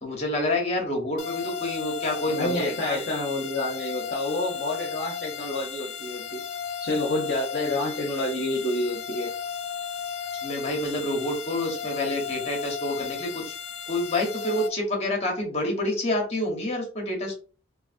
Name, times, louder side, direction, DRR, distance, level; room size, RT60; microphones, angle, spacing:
voice 1, 0.0-3.0 10.4-13.5 13.9-17.4, left 1 dB, 35° left, 1 dB, 1.1 m, -28 dB
sound 1, 1.2-14.7, left 7 dB, 90° left, 0.5 m, -35 dB
voice 2, 2.3-6.4 6.8-9.3, left 1 dB, 50° left, -2 dB, 0.7 m, -28 dB
4.0 x 2.4 x 2.5 m, 0.37 s
head